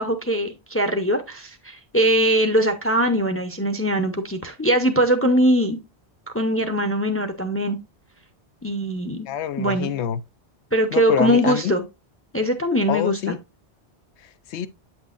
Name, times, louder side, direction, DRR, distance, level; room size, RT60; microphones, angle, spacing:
voice 1, 0.0-5.8 6.3-7.8 8.6-9.3 9.6-9.9 10.7-11.8 12.3-13.4, equal, 15° left, 0.5 m, -21 dB
voice 2, 9.3-10.2 10.9-11.7 12.9-13.4 14.5-14.7, left 10 dB, 90° left, 0.9 m, -26 dB
8.2 x 5.9 x 2.4 m
omnidirectional pair, 1.1 m